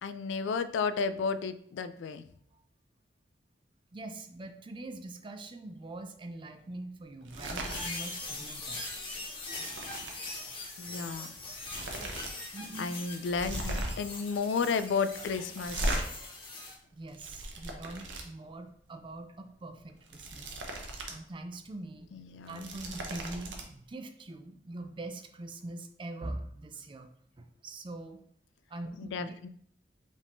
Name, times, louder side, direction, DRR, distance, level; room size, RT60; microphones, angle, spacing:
voice 1, 0.0-2.2 10.8-11.3 12.8-16.0 22.1-22.7 29.0-29.5, left 5 dB, 75° left, 12 dB, 0.3 m, -33 dB
voice 2, 3.9-8.8 10.5-10.7 12.5-12.9 16.9-20.6 21.1-22.1 22.5-27.1 27.4-28.2 28.7-29.5, right 2 dB, 25° right, 8 dB, 0.4 m, -43 dB
sound 1, 7.2-7.9 8.2-8.5 8.8-10.2 11.1-11.2 11.5-12.3 12.6-12.7 13.3-14.1 15.6-16.0 16.8-18.2 19.9-21.2 21.5-21.6 22.3-23.6, right 1 dB, 80° right, 0.8 m, -37 dB
sound 2, 7.7-16.7, left 2 dB, 30° left, 1.2 m, -41 dB
5.1 x 2.6 x 3.5 m, 0.65 s
head